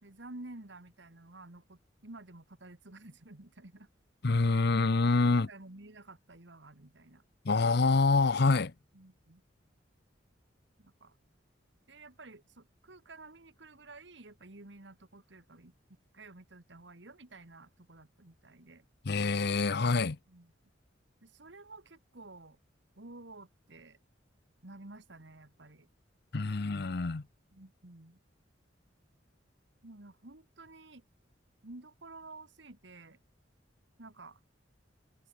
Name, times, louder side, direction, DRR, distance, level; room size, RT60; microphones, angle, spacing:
voice 1, 0.0-3.9 5.3-7.2 8.9-9.4 10.8-11.2 11.9-15.7 16.1-18.8 20.3-20.5 21.2-22.6 23.0-24.0 24.6-25.9 27.5-28.2 29.8-31.0 31.6-33.2 34.0-34.4, right 2 dB, 65° right, 2.0 m, -51 dB
voice 2, 4.2-5.5 7.4-8.7 19.1-20.2 26.3-27.2, left 3 dB, 55° left, 0.7 m, -26 dB
head